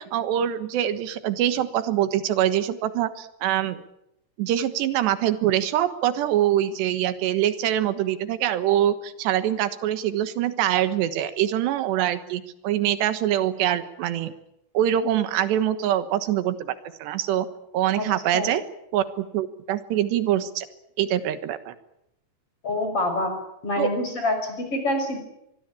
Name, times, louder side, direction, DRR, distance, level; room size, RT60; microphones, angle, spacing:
voice 1, 0.0-3.8 4.4-14.3 14.8-16.8 17.0-17.5 17.7-18.6 18.9-20.7 21.0-21.8 23.8-23.9, right 11 dB, 90° right, 11 dB, 3.5 m, -24 dB
voice 2, 22.6-23.3 23.6-25.2, left 1 dB, 35° left, 6 dB, 6.5 m, -26 dB
25.0 x 21.0 x 8.8 m, 0.80 s
omnidirectional pair, 4.8 m